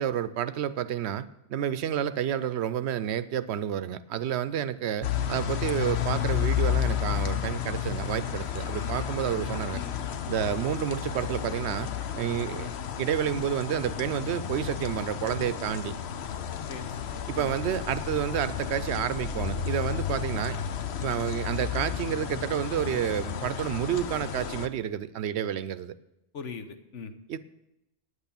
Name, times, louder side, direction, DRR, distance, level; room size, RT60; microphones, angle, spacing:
voice 1, 0.0-9.8 10.3-11.9 12.2-12.7 13.0-15.9 17.3-20.6 21.0-25.9 27.3-27.4, right 10 dB, 70° right, 15 dB, 0.8 m, -30 dB
sound 1, 5.0-24.7, left 9 dB, 70° left, 0.9 m, -32 dB
voice 2, 16.7-17.5 26.3-27.1, left 5 dB, 90° left, 8 dB, 1.3 m, -41 dB
9.7 x 8.1 x 7.0 m, 0.88 s
omnidirectional pair, 1.2 m